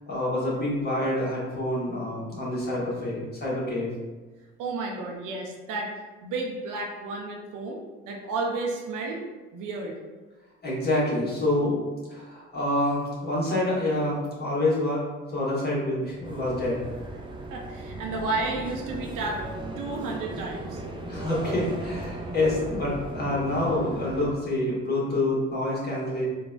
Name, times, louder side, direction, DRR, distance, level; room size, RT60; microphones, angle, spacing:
voice 1, 0.1-3.9 10.6-11.8 12.1-15.0 15.3-16.9 21.1-26.2, left 1 dB, 25° left, -7 dB, 1.4 m, -27 dB
voice 2, 4.6-5.9 6.2-7.8 8.1-9.2 9.5-9.9 17.5-19.4 19.8-20.8, right 3 dB, 60° right, 0 dB, 0.6 m, -32 dB
sound 1, 16.2-24.3, right 1 dB, 15° right, 0.5 m, -37 dB
3.7 x 2.3 x 2.3 m, 1.3 s
hypercardioid pair, 50°, 36 cm